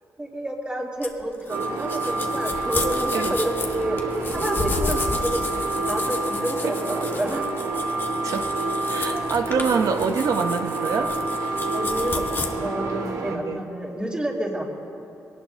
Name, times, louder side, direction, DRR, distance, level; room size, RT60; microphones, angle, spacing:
voice 1, 0.2-7.6 9.0-9.3 11.7-14.6, right 1 dB, 15° right, -3 dB, 3.0 m, -29 dB
sound 1, 1.0-12.5, left 3 dB, 35° left, 1.5 m, -32 dB
sound 2, 1.5-13.4, right 2 dB, 85° right, 1.8 m, -28 dB
voice 2, 8.9-11.1 13.3-13.6, right 5 dB, 70° right, 6 dB, 0.7 m, -25 dB
22.5 x 18.0 x 2.7 m, 2.7 s
cardioid pair, 95°, 6 cm